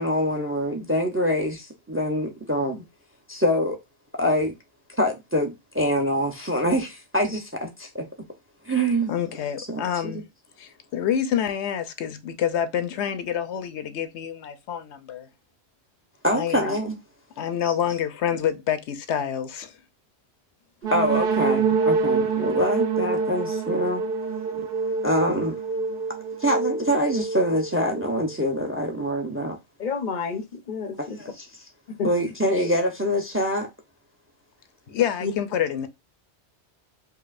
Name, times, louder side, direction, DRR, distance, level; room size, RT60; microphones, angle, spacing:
voice 1, 0.0-2.8 3.3-3.8 4.1-4.5 4.9-8.1 8.6-9.1 9.6-10.2 16.2-17.0 17.6-17.7 20.9-24.0 24.5-24.7 25.0-25.6 26.4-29.6 31.0-31.7 32.0-33.7, equal, 15° right, 0.6 m, -25 dB
voice 2, 9.1-10.2 10.6-15.3 16.3-16.7 17.4-19.7 34.9-35.9, left 9 dB, 80° left, 0.9 m, -27 dB
sound 1, 20.8-28.5, right 4 dB, 60° right, 0.9 m, -26 dB
voice 3, 29.8-31.2 32.0-32.1 35.2-35.3, left 5 dB, 50° left, 0.7 m, -29 dB
4.7 x 2.7 x 2.4 m
omnidirectional pair, 1.1 m